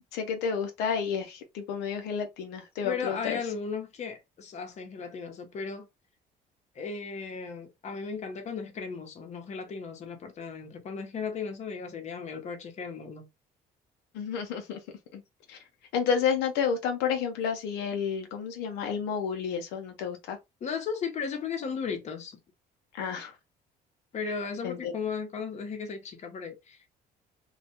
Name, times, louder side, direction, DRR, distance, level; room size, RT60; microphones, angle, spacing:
voice 1, 0.1-3.4 14.1-14.8 15.1-15.2 15.5-15.6 15.9-20.4 22.9-23.3 24.6-24.9, left 7 dB, 90° left, 0.6 m, -30 dB
voice 2, 2.8-5.9 6.7-13.3 20.6-22.4 24.1-26.8, left 5 dB, 40° left, 0.8 m, -36 dB
2.3 x 2.1 x 2.7 m
cardioid pair, 110°, 17 cm